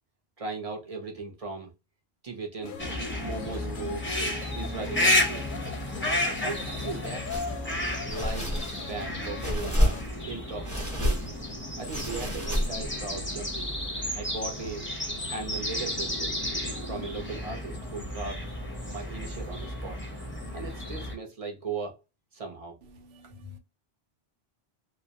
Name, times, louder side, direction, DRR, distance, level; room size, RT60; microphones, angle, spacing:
voice 1, 0.4-1.7 2.2-2.8 3.2-4.1 4.5-5.5 6.4-7.3 8.0-11.3 11.8-13.7 14.1-14.9 15.3-16.3 16.9-18.4 18.9-20.0 20.5-22.0 22.3-22.8, right 3 dB, 40° right, 0.7 m, -38 dB
sound 1, 2.6-10.0, left 5 dB, 60° left, 0.6 m, -40 dB
sound 2, 2.8-21.1, left 1 dB, 15° left, 0.5 m, -32 dB
sound 3, 7.3-7.5 8.1-8.9 9.4-10.3 10.6-11.4 11.8-13.0, equal, 20° right, 0.9 m, -29 dB
voice 2, 23.0-23.6, left 5 dB, 85° right, 0.8 m, -47 dB
2.3 x 2.1 x 2.7 m
omnidirectional pair, 1.1 m